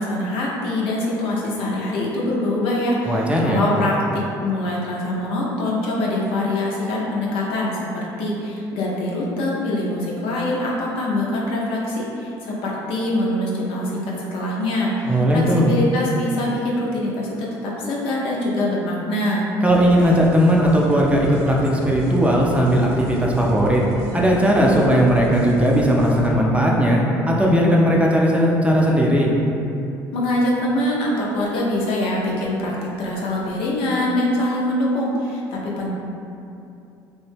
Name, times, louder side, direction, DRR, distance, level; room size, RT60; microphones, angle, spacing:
voice 1, 0.0-19.5 30.1-32.7 33.0-35.9, left 1 dB, 70° left, -4 dB, 0.6 m, -24 dB
voice 2, 3.1-3.6 15.0-15.7 19.6-23.8 24.1-29.3, equal, 10° right, -3 dB, 0.5 m, -17 dB
sound 1, 19.7-26.3, right 2 dB, 75° right, 0.4 m, -36 dB
3.0 x 2.1 x 3.2 m, 2.7 s
hypercardioid pair, 60°, 10 cm